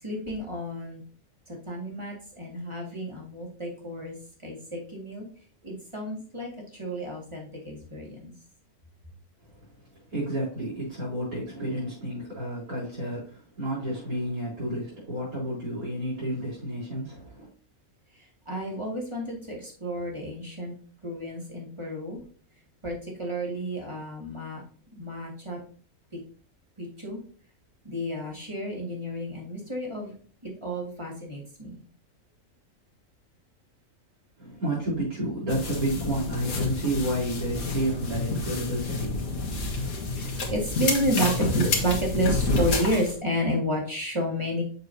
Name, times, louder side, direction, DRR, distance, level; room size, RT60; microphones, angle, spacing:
voice 1, 0.0-1.0 1.5-4.2 4.4-5.3 5.6-8.3 18.2-20.7 21.0-22.2 22.8-24.6 24.9-25.6 26.8-27.2 27.8-30.1 30.4-31.8 40.1-44.6, equal, 20° right, 2.2 m, -31 dB
voice 2, 10.1-17.5 34.4-39.4, right 1 dB, 90° right, 4.5 m, -31 dB
sound 1, 35.5-43.1, left 3 dB, 80° left, 1.8 m, -29 dB
6.7 x 6.7 x 2.8 m
omnidirectional pair, 1.5 m